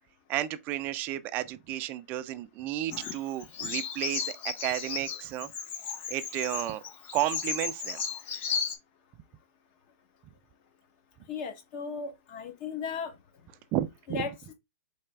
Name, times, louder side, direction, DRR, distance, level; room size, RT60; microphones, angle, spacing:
voice 1, 0.3-5.5 6.1-6.8 7.1-8.0 13.7-14.2, right 13 dB, 25° right, 0.3 m, -32 dB
Bird vocalization bird call bird song, 2.9-8.8, left 6 dB, 25° left, 0.6 m, -35 dB
voice 2, 11.3-13.1 14.1-14.3, left 5 dB, 40° left, 1.0 m, -36 dB
4.2 x 3.3 x 3.2 m
hypercardioid pair, 150°, 8 cm